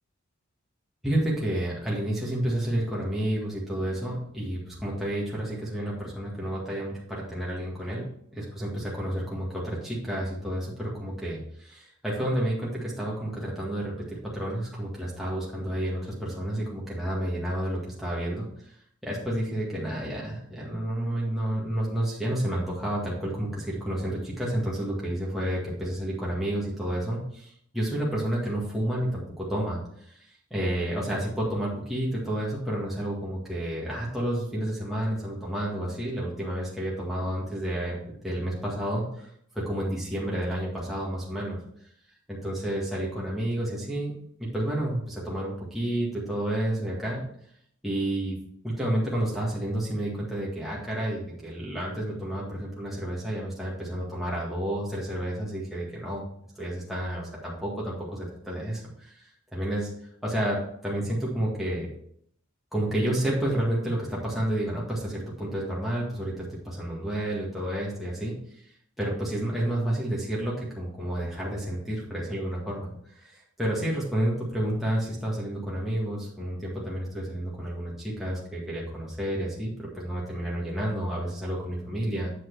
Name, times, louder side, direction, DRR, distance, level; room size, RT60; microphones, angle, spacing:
voice 1, 1.0-8.1 8.3-18.8 19.0-41.6 42.3-44.1 44.4-47.2 47.8-48.4 48.6-56.2 56.5-59.9 60.2-61.9 62.7-82.3, right 1 dB, ahead, -6 dB, 1.8 m, -30 dB
8.1 x 4.7 x 4.7 m, 0.68 s
head